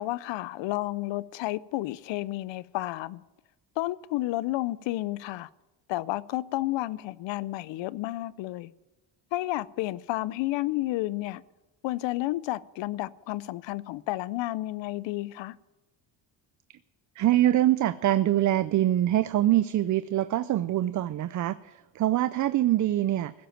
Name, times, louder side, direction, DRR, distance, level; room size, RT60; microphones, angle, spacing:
voice 1, 0.0-3.2 3.8-5.5 5.9-8.7 9.3-11.4 11.8-15.6, left 17 dB, 80° left, 0.6 m, -31 dB
voice 2, 17.2-23.3, right 13 dB, 45° right, 0.4 m, -24 dB
15.5 x 7.7 x 9.0 m
cardioid pair, 110°, 44 cm